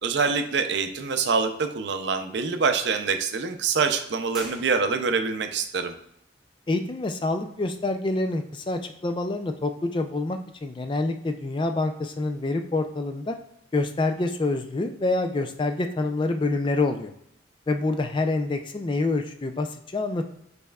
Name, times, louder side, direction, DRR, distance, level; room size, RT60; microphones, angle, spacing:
voice 1, 0.0-5.9, right 5 dB, 65° right, 7 dB, 0.5 m, -25 dB
sound 1, 4.3-5.4, right 1 dB, ahead, 1.0 m, -42 dB
voice 2, 6.7-13.4 13.7-17.1 17.7-20.3, left 2 dB, 25° left, 7 dB, 0.3 m, -27 dB
5.4 x 4.2 x 2.3 m, 0.75 s
head